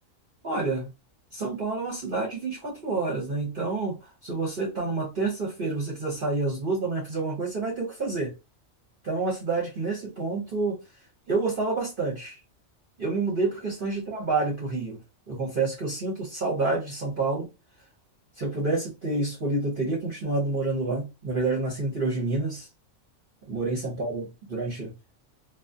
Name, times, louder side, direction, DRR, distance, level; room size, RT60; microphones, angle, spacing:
voice 1, 0.4-0.9 1.3-8.3 9.0-10.8 11.3-12.4 13.0-15.0 15.3-17.5 18.4-22.7 23.5-24.9, right 3 dB, 50° right, 0.8 m, -28 dB
2.4 x 2.3 x 2.5 m
omnidirectional pair, 1.4 m